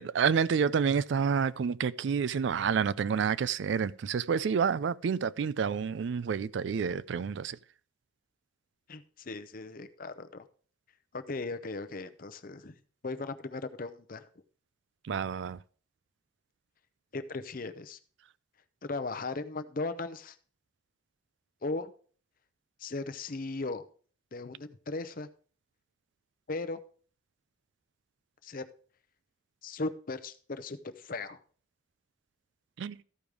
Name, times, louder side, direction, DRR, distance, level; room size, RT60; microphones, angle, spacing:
voice 1, 0.0-7.6 15.1-15.6 32.8-33.0, right 6 dB, 60° right, 0.3 m, -29 dB
voice 2, 8.9-10.5 11.1-12.7 13.0-14.3 17.1-18.0 18.8-20.4 21.6-21.9 22.8-23.9 24.3-25.3 26.5-26.8 28.4-28.6 29.6-31.4, left 3 dB, 45° left, 0.6 m, -37 dB
14.0 x 5.2 x 4.7 m
head